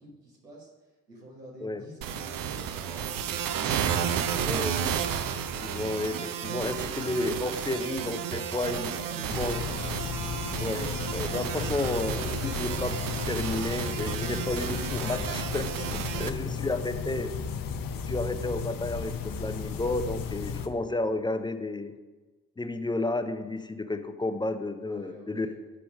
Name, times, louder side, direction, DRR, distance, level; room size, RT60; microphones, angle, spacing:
voice 1, 0.0-3.4 8.9-9.7 15.9-16.6 24.8-25.6, equal, 90° right, -4 dB, 1.4 m, -49 dB
sound 1, 2.0-16.3, right 8 dB, 45° right, 0.6 m, -32 dB
voice 2, 5.6-8.9 9.4-9.6 10.6-17.3 18.0-21.9 22.6-25.5, left 2 dB, 10° left, 8 dB, 0.5 m, -32 dB
sound 2, 9.3-20.7, left 6 dB, 45° left, 0.8 m, -34 dB
6.3 x 5.6 x 5.3 m, 1.3 s
figure-of-eight pair, 40°, 47 cm